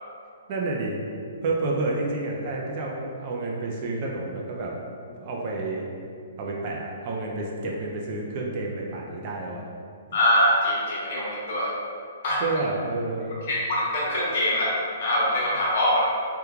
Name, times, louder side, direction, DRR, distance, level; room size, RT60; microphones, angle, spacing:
voice 1, 0.5-1.0 1.4-4.7 5.2-5.9 6.4-9.6 12.4-13.4, right 2 dB, 40° right, -2 dB, 0.4 m, -29 dB
voice 2, 10.1-11.7 12.2-12.4 13.5-16.0, left 1 dB, 55° left, -6 dB, 0.9 m, -23 dB
3.1 x 2.2 x 2.3 m, 2.3 s
hypercardioid pair, 150°, 0 cm